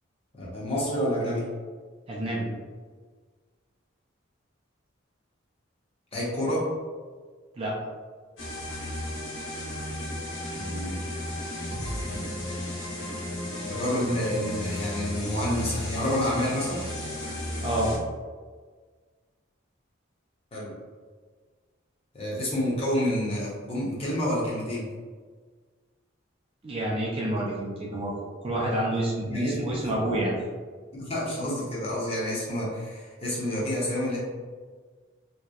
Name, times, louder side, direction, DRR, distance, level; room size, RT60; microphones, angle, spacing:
voice 1, 0.3-1.4 6.1-6.7 10.5-11.0 12.0-12.3 13.6-16.8 20.5-20.8 22.1-24.9 29.3-29.9 30.9-34.2, equal, 30° left, -6 dB, 0.6 m, -29 dB
voice 2, 2.1-2.5 7.6-7.8 17.6-18.0 26.6-28.1 28.4-30.3, right 1 dB, 25° right, -4 dB, 0.4 m, -28 dB
sound 1, 8.4-18.0, left 1 dB, 75° left, 0.8 m, -34 dB
2.7 x 2.0 x 2.3 m, 1.5 s
head